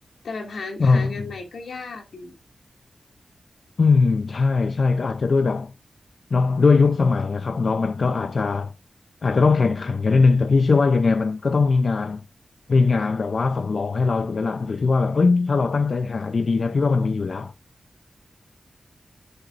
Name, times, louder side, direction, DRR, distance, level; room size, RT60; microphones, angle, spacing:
voice 1, 0.2-2.4, left 3 dB, 90° left, 2.3 m, -35 dB
voice 2, 0.8-1.3 3.8-5.7 6.3-8.7 9.2-12.2 12.7-17.5, left 4 dB, 55° left, 0.5 m, -20 dB
9.6 x 7.8 x 2.5 m
wide cardioid pair, 115°, 0 cm